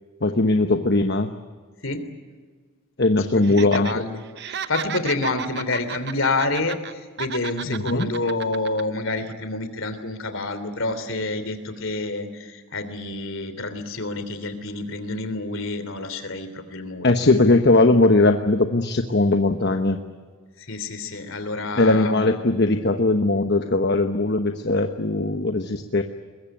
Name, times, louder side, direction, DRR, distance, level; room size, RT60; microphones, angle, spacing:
voice 1, 0.2-1.3 3.0-4.0 7.7-8.1 17.0-20.0 21.8-26.0, left 2 dB, 50° left, 6 dB, 1.1 m, -19 dB
voice 2, 3.3-4.2 4.5-17.1 20.6-22.1, left 2 dB, 65° left, 10 dB, 3.2 m, -28 dB
Laughter, 3.4-3.9 4.2-6.9 7.2-8.8 9.2-9.3, right 8 dB, 50° right, 0.7 m, -34 dB
23.0 x 21.5 x 9.0 m, 1.5 s
head